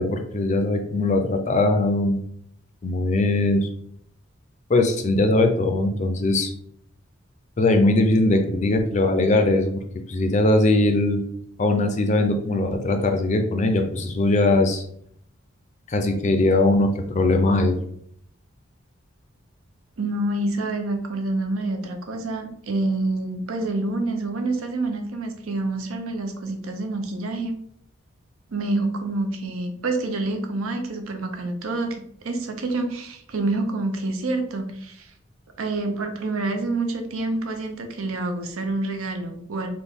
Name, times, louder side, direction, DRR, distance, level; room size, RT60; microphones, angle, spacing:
voice 1, 0.0-2.2 2.8-3.7 4.7-6.5 7.6-9.8 10.1-11.2 11.6-14.8 15.9-17.8, left 2 dB, 35° left, 6 dB, 0.4 m, -20 dB
voice 2, 20.0-27.6 28.5-35.1 35.6-39.7, right 2 dB, 85° right, 5 dB, 0.6 m, -27 dB
3.9 x 2.2 x 3.4 m, 0.67 s
head